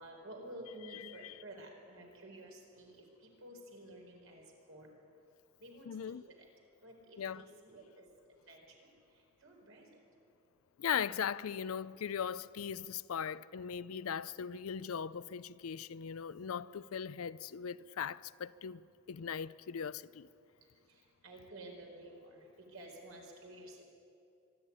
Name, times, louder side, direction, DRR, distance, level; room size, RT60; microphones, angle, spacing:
voice 1, 0.0-2.9 3.2-4.9 5.6-5.9 6.8-8.1 8.5-8.9 9.4-9.9 21.2-22.4 22.7-23.9, right 1 dB, 70° right, 4.5 m, -51 dB
voice 2, 0.9-1.3 5.9-6.2 7.2-7.5 10.8-18.8 19.1-20.3, left 7 dB, 85° left, 0.5 m, -39 dB
24.0 x 12.0 x 9.7 m
head